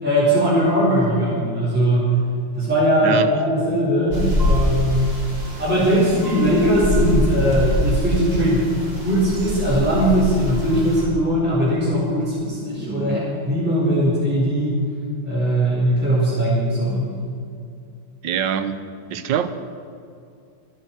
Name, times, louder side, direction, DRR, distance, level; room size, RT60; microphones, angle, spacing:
voice 1, 0.0-2.1 2.6-5.1 5.6-8.7 9.0-14.8 15.3-17.1, equal, 5° right, -7 dB, 4.8 m, -20 dB
sound 1, 4.1-11.0, equal, 25° right, 3.2 m, -24 dB
voice 2, 12.9-13.2 18.2-18.8 19.1-19.5, right 8 dB, 65° right, 10 dB, 1.5 m, -25 dB
26.0 x 9.1 x 6.1 m, 2.4 s
omnidirectional pair, 2.4 m